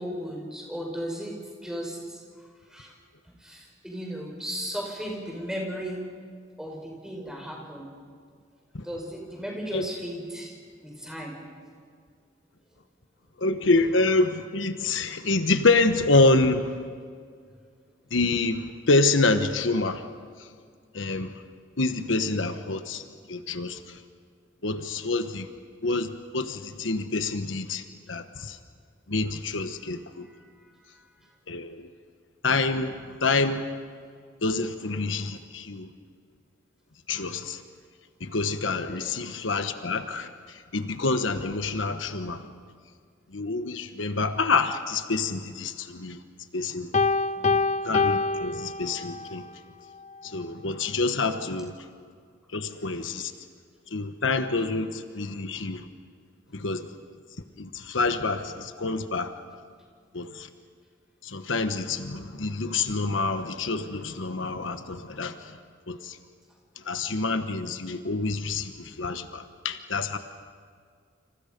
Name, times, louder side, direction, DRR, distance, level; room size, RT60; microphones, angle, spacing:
voice 1, 0.0-2.2 2.7-2.9 3.4-6.1 6.6-7.9 8.8-10.5 10.8-11.4 30.3-30.5 30.9-31.3 38.9-39.2 47.4-47.7, equal, 5° right, -1 dB, 5.5 m, -36 dB
voice 2, 13.4-16.7 18.1-20.0 20.9-21.3 21.8-23.0 23.3-23.8 24.6-25.5 25.8-27.8 28.1-28.6 29.1-30.2 31.5-31.9 32.4-32.9 33.2-33.6 34.4-35.9 37.1-37.6 38.2-40.3 40.7-42.5 43.3-46.2 46.5-46.9 47.8-49.5 50.2-51.7 52.5-53.3 53.9-55.9 56.5-56.9 57.6-59.3 60.1-60.5 61.2-65.5 65.9-66.2 66.9-70.2, left 3 dB, 85° left, 9 dB, 1.3 m, -27 dB
Piano, 46.9-49.3, left 4 dB, 35° left, 0.6 m, -25 dB
29.5 x 27.0 x 5.3 m, 2.1 s
head